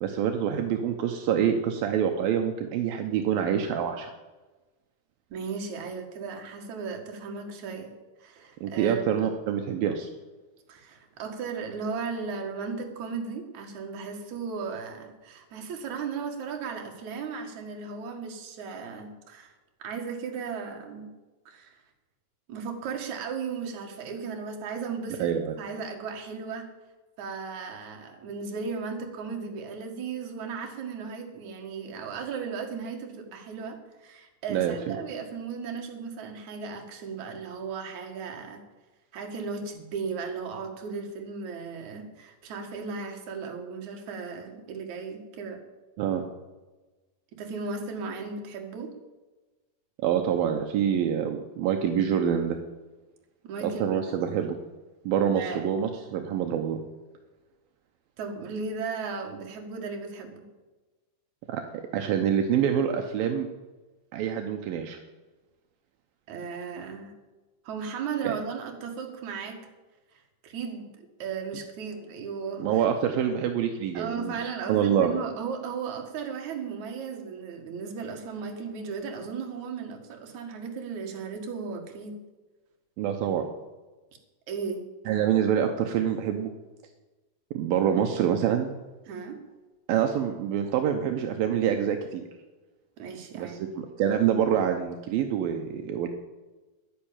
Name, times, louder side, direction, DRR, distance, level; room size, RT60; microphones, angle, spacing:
voice 1, 0.0-4.1 8.6-10.1 25.2-25.5 34.5-35.0 46.0-46.2 50.0-52.6 53.6-54.6 55.1-56.8 61.5-63.5 64.1-65.0 68.2-68.3 72.6-75.1 83.0-83.5 85.1-86.5 87.5-88.7 89.9-92.2 93.4-93.7 94.0-96.1, right 9 dB, 80° right, 4 dB, 2.7 m, -26 dB
voice 2, 5.3-7.9 8.2-9.3 10.7-19.5 19.8-21.1 21.5-21.8 22.5-26.7 27.2-38.6 39.1-45.6 47.3-48.9 53.4-54.0 55.3-55.7 58.2-60.4 66.3-67.1 67.6-69.6 70.4-72.8 73.9-82.2 84.5-84.8 89.1-89.4 93.0-93.6, right 5 dB, 55° right, 2 dB, 3.0 m, -36 dB
11.5 x 10.5 x 8.9 m, 1.2 s
omnidirectional pair, 4.2 m